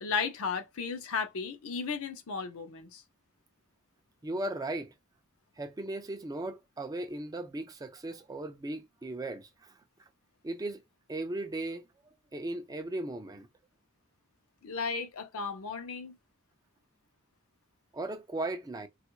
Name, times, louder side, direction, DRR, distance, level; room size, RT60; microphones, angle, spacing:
voice 1, 0.0-3.0 14.6-16.2, left 5 dB, 65° left, 0.6 m, -34 dB
voice 2, 4.2-4.9 5.6-9.7 10.4-10.8 11.1-11.8 12.3-13.5 17.9-18.9, right 2 dB, 15° right, 0.4 m, -37 dB
3.4 x 2.3 x 3.0 m
head